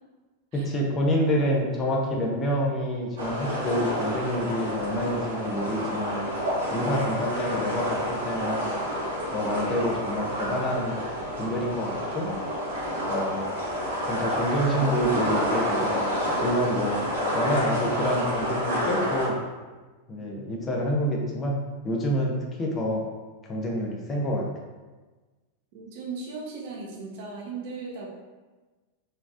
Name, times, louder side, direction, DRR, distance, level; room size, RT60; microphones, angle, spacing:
voice 1, 0.5-6.2 6.7-8.7 9.3-11.0 11.4-12.3 13.1-13.4 14.0-16.1 16.4-17.0 17.3-19.4 20.1-21.6 21.8-23.0 23.4-24.5, equal, 25° left, -1 dB, 0.7 m, -27 dB
sound 1, 3.2-19.3, equal, 65° right, 1.2 m, -29 dB
voice 2, 25.7-28.1, right 4 dB, 50° right, -2 dB, 0.9 m, -37 dB
4.3 x 3.4 x 2.5 m, 1.3 s
figure-of-eight pair, 90°, 0 cm